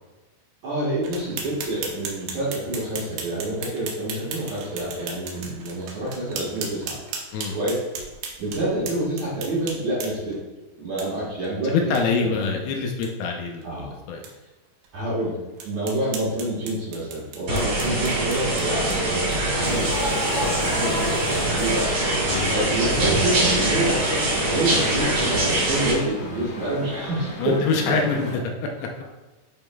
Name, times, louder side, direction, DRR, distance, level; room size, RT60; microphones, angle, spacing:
voice 1, 0.6-7.0 7.5-7.8 8.4-10.4 10.8-11.9 12.2-12.6 13.6-13.9 14.9-15.4 15.6-20.1 20.6-21.9 22.5-27.6 27.9-28.0, right 1 dB, 60° right, -7 dB, 2.1 m, -27 dB
sound 1, 1.0-10.4 11.0-11.1 11.4-11.5 11.9-12.0 12.4-12.5 12.9-13.1 13.6-13.7 14.2-14.3 14.8-14.9 15.6-19.6, right 5 dB, 75° right, 2.7 m, -37 dB
voice 2, 11.6-14.2 17.5-17.7 20.4-20.6 22.3-22.6 27.4-28.9, left 4 dB, 80° left, 2 dB, 2.5 m, -25 dB
sound 2, 17.5-25.9, right 1 dB, 45° right, 2.2 m, -23 dB
sound 3, 19.6-28.4, left 2 dB, 60° left, 2.2 m, -34 dB
10.5 x 5.1 x 2.2 m, 1.2 s
omnidirectional pair, 4.8 m